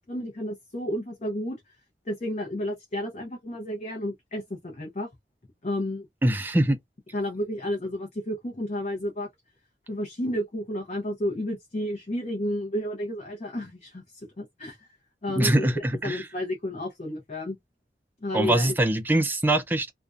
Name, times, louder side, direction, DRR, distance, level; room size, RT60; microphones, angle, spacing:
voice 1, 0.0-1.6 2.1-5.1 5.6-6.1 7.1-9.3 9.9-14.0 14.4-14.9 15.2-15.7 16.0-17.6 18.2-18.7, left 1 dB, 40° left, 0.6 m, -31 dB
voice 2, 6.2-6.8 15.3-16.3 18.3-19.9, right 1 dB, 10° right, 0.3 m, -23 dB
2.5 x 2.1 x 2.4 m
head